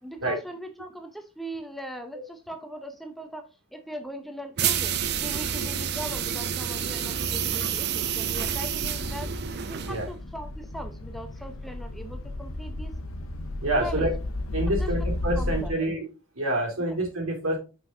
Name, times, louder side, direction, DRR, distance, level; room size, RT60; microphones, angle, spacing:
voice 1, 0.0-12.9 13.8-14.1 14.7-14.9 15.4-15.8 16.9-17.0, equal, ahead, 6 dB, 0.7 m, -40 dB
sound 1, 4.6-10.2, right 9 dB, 50° right, 0.6 m, -29 dB
sound 2, 4.7-15.7, left 1 dB, 85° left, 0.8 m, -35 dB
voice 2, 13.6-14.1 14.5-16.1 16.3-17.6, right 1 dB, 85° right, 0 dB, 3.2 m, -27 dB
5.9 x 5.4 x 3.8 m, 0.30 s
head